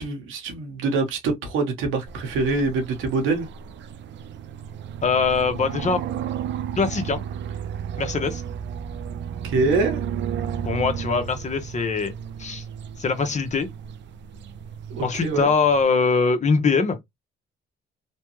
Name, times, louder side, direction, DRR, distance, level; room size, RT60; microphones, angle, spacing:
voice 1, 0.0-3.5 9.4-10.0 14.9-15.5, right 3 dB, 90° right, 1.1 m, -24 dB
sound 1, 2.1-15.8, right 8 dB, 65° right, 0.5 m, -33 dB
voice 2, 5.0-6.0 6.8-7.2 8.0-8.4 10.6-12.1 12.4-12.6 13.0-13.7 15.0-17.0, left 4 dB, 35° left, 0.8 m, -22 dB
3.1 x 2.2 x 3.0 m
cardioid pair, 90°, 20 cm